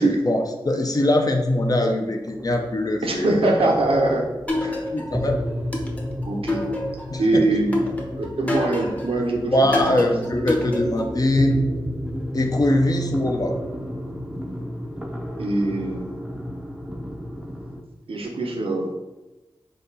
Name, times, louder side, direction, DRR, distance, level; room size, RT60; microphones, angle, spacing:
voice 1, 0.0-3.3 4.9-5.4 7.1-7.6 9.2-11.6 12.3-13.6, left 1 dB, 45° left, 2 dB, 0.5 m, -22 dB
sound 1, 1.0-17.8, equal, 10° right, 0.5 m, -32 dB
voice 2, 3.0-4.3 4.6-4.8 6.2-6.6 7.2-7.8 8.2-10.1 15.4-16.3 18.1-18.9, right 2 dB, 85° right, 1 dB, 0.6 m, -23 dB
sound 2, 4.5-5.2 5.7-7.2 7.7-9.1 9.7-11.2, left 1 dB, 15° left, 0.8 m, -28 dB
4.1 x 2.3 x 3.9 m, 1.1 s
cardioid pair, 45°, 9 cm